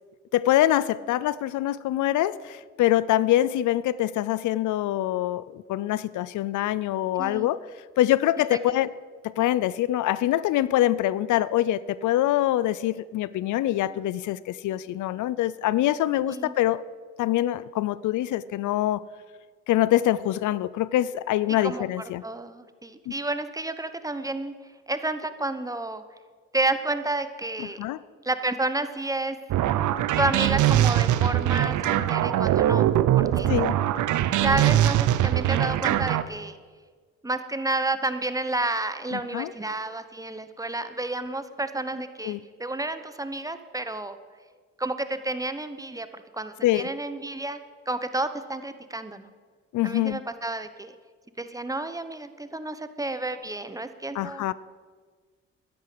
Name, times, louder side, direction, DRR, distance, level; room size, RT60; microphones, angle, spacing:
voice 1, 0.3-7.6 8.0-8.9 9.2-16.8 17.2-19.0 19.7-22.2 23.1-23.2 27.8-28.0 33.5-33.7 39.1-39.5 42.2-42.4 46.6-46.9 49.7-50.2 54.1-54.5, left 14 dB, 75° left, 19 dB, 0.5 m, -24 dB
voice 2, 7.2-7.5 8.5-8.6 16.2-16.5 21.6-21.9 22.2-24.5 24.9-26.0 26.5-27.8 28.2-29.4 30.2-33.5 34.4-36.6 37.2-44.2 44.8-46.1 46.3-47.6 47.9-49.3 49.8-50.9 51.4-54.4, right 2 dB, 10° right, 10 dB, 1.0 m, -30 dB
sound 1, 29.5-36.2, right 12 dB, 75° right, 0.7 m, -22 dB
11.5 x 10.5 x 7.8 m, 1.5 s
cardioid pair, 90°, 30 cm